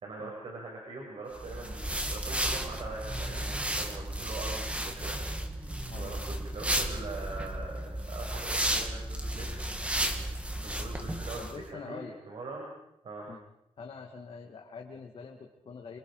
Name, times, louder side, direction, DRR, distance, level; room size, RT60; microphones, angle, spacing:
voice 1, 0.0-5.2 6.0-9.5 10.6-12.0 12.3-12.7 13.0-13.3, right 3 dB, 60° right, -2 dB, 6.2 m, -42 dB
sound 1, 1.3-11.5, right 1 dB, 10° right, 2.4 m, -33 dB
voice 2, 5.9-6.3 11.3-12.2 13.3-13.4 13.8-16.0, left 5 dB, 55° left, 2 dB, 2.5 m, -45 dB
27.5 x 26.5 x 5.1 m, 0.83 s
wide cardioid pair, 155°, 11 cm